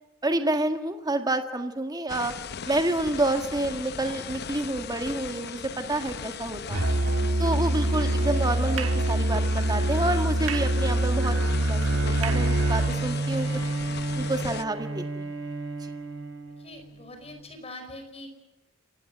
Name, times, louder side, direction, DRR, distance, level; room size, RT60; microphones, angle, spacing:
voice 1, 0.2-2.3 2.6-6.8 7.4-13.5 14.1-15.3, right 1 dB, 20° right, 6 dB, 1.7 m, -28 dB
sound 1, 2.1-14.6, left 6 dB, 55° left, 0.8 m, -38 dB
Musical instrument, 6.7-13.0, right 1 dB, 80° right, 1.7 m, -25 dB
Bowed string instrument, 11.4-16.9, right 3 dB, 65° right, 4.9 m, -31 dB
voice 2, 16.6-18.3, left 1 dB, 30° left, 6 dB, 5.0 m, -43 dB
28.5 x 16.5 x 9.3 m, 0.99 s
head